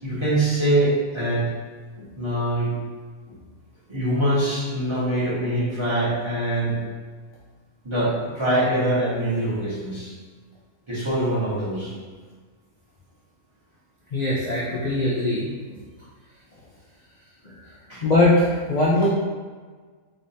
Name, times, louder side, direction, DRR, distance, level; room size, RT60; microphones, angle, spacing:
voice 1, 0.0-1.5 2.2-2.7 3.9-6.8 7.8-10.1 10.9-11.9 17.5-17.6 17.9-18.0 18.9-19.0, right 1 dB, 20° right, -9 dB, 1.1 m, -24 dB
voice 2, 14.1-15.5 18.0-19.1, left 1 dB, 75° left, -6 dB, 0.3 m, -21 dB
3.7 x 3.3 x 2.7 m, 1.5 s
omnidirectional pair, 1.6 m